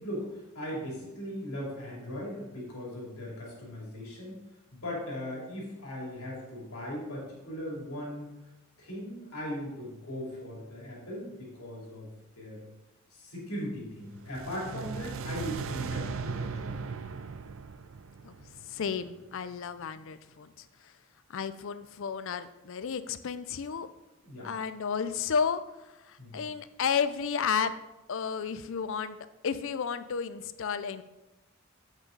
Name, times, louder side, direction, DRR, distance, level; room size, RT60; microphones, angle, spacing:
voice 1, 0.0-4.4 4.7-8.3 8.8-12.1 12.4-12.6 13.1-16.8 24.2-24.5 26.2-26.4, equal, 85° left, -3 dB, 3.0 m, -39 dB
sound 1, 14.1-19.3, right 5 dB, 60° right, 0.4 m, -38 dB
voice 2, 18.7-20.7 21.3-23.9 24.4-25.6 26.1-27.7 28.1-29.2 29.4-31.0, left 6 dB, 60° left, 13 dB, 0.4 m, -32 dB
7.6 x 6.2 x 3.9 m, 0.96 s
head